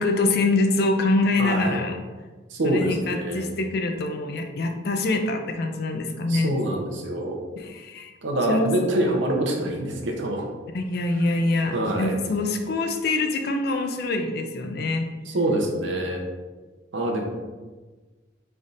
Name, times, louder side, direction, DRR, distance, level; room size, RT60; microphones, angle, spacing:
voice 1, 0.0-2.0 2.6-6.5 7.6-8.1 8.5-8.7 10.7-15.1, left 2 dB, 50° left, 5 dB, 0.4 m, -24 dB
voice 2, 1.4-1.8 2.5-3.5 6.3-7.4 8.2-10.5 11.7-12.2 15.3-16.2 16.9-17.2, right 1 dB, 75° right, 1 dB, 0.6 m, -25 dB
4.0 x 3.4 x 2.5 m, 1.3 s
head